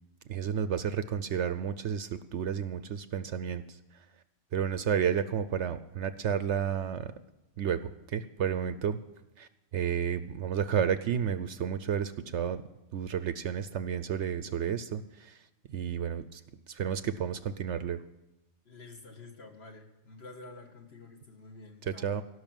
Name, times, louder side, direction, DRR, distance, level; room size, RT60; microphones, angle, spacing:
voice 1, 0.3-3.6 4.5-7.1 7.6-7.8 8.1-9.0 9.4-9.5 9.7-12.6 12.9-15.4 15.7-16.4 16.7-18.0 21.8-22.2, right 8 dB, 65° right, 13 dB, 0.8 m, -31 dB
voice 2, 18.6-22.1, left 3 dB, 50° left, 0 dB, 2.2 m, -49 dB
17.5 x 6.4 x 9.0 m, 0.96 s
omnidirectional pair, 1.4 m